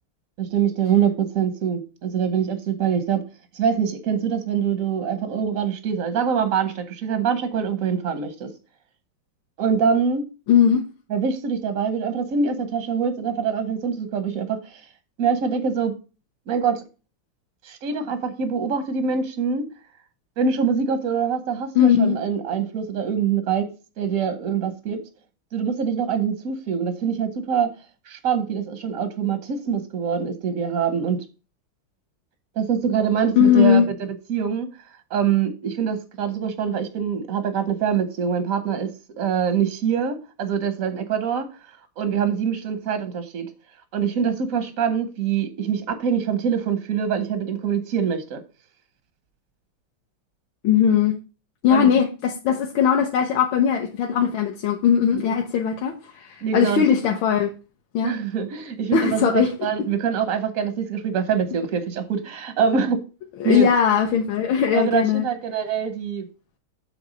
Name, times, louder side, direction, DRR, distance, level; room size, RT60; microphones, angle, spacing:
voice 1, 0.4-3.2 3.5-8.5 9.6-10.2 11.1-14.9 15.2-15.9 16.5-16.8 17.6-19.7 20.4-23.7 24.0-25.0 25.5-27.7 28.1-31.2 32.6-34.7 35.1-38.9 39.2-41.5 42.0-43.5 43.9-48.4 51.7-51.9 55.1-55.3 56.4-56.8 58.0-63.0 63.4-63.7 64.7-66.3, right 7 dB, 65° right, 0.9 m, -24 dB
voice 2, 10.5-10.9 21.7-22.1 33.4-33.9 50.6-51.2 51.6-57.5 57.9-58.2 58.9-59.5 63.4-65.3, left 8 dB, 70° left, 1.5 m, -19 dB
7.8 x 3.3 x 6.1 m
omnidirectional pair, 2.3 m